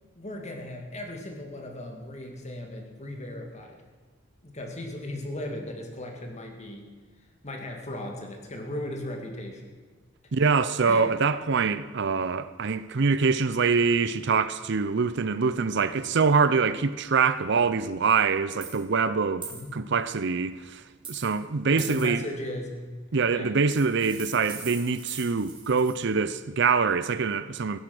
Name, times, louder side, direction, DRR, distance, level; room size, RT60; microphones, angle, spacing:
voice 1, 0.2-3.8 4.4-6.9 7.4-9.7 10.9-11.1 19.5-19.7 21.7-22.9 23.3-23.5, left 1 dB, 35° left, 2.4 m, -37 dB
voice 2, 10.3-20.8 21.1-22.3 23.1-27.8, right 5 dB, 60° right, 0.6 m, -24 dB
sound 1, 18.6-18.7 19.4-19.6 21.0-21.4 21.8-22.1 23.7-26.0, right 5 dB, 25° right, 3.5 m, -40 dB
16.5 x 11.0 x 6.2 m
head